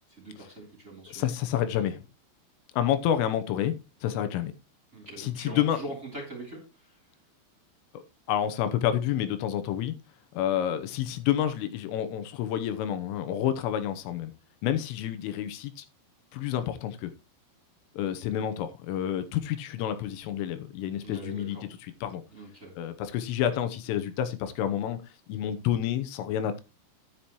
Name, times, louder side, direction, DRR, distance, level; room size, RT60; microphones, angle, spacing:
voice 1, 0.1-1.3 4.9-7.0 21.0-21.7 22.3-22.7, right 1 dB, 20° right, 2.8 m, -42 dB
voice 2, 1.1-2.0 2.7-3.7 4.0-4.5 5.2-5.8 8.3-10.0 10.3-14.3 14.6-15.9 16.3-17.1 18.0-21.6 22.0-22.2 22.8-25.0 25.3-26.6, left 10 dB, 90° left, 3.5 m, -29 dB
10.5 x 9.7 x 3.0 m
omnidirectional pair, 5.7 m